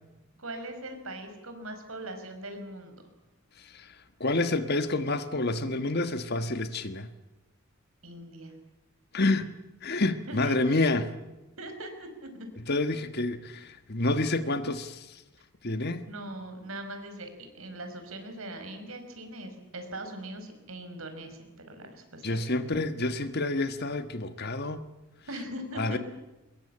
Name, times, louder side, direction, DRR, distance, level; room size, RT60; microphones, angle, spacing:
voice 1, 0.4-3.0 8.0-8.5 10.3-10.8 11.6-12.3 13.4-13.5 16.1-17.3 17.5-22.7 25.3-26.0, right 1 dB, 80° right, 5.2 m, -41 dB
voice 2, 4.2-7.1 9.1-9.5 9.8-11.1 12.7-15.2 15.6-16.1 22.2-24.8 25.8-26.0, left 2 dB, 50° left, 1.4 m, -28 dB
23.5 x 21.5 x 8.7 m
head